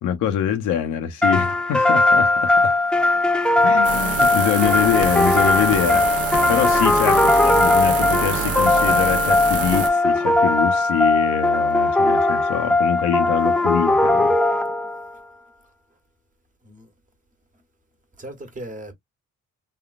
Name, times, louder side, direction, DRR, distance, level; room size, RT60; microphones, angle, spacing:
voice 1, 0.0-2.7 3.6-14.3, left 9 dB, 90° left, 0.8 m, -24 dB
sound 1, 1.2-15.1, left 2 dB, 5° left, 0.3 m, -19 dB
voice 2, 3.5-4.2 16.6-16.9 18.2-18.9, right 1 dB, 25° right, 1.1 m, -39 dB
sound 2, 3.8-9.9, right 6 dB, 50° right, 0.8 m, -26 dB
3.5 x 2.3 x 2.4 m
cardioid pair, 90°, 30 cm